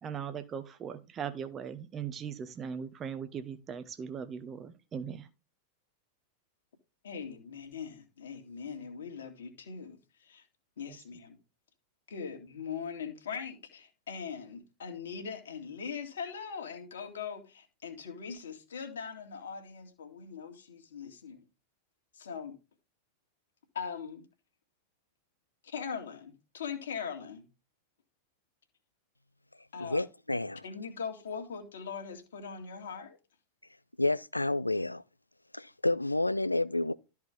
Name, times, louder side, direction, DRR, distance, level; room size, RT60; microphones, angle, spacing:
voice 1, 0.0-5.3 10.9-11.0, right 7 dB, 25° right, 1.1 m, -39 dB
voice 2, 7.0-10.4 10.8-11.4 12.1-21.4 22.1-22.6 23.7-24.2 25.6-27.4 29.7-30.0 30.6-33.2, left 6 dB, 65° left, 2.2 m, -41 dB
voice 3, 29.8-30.6 34.0-35.0 35.5-36.9, left 2 dB, 85° left, 0.4 m, -30 dB
13.0 x 4.7 x 3.6 m
figure-of-eight pair, 90°, 0 cm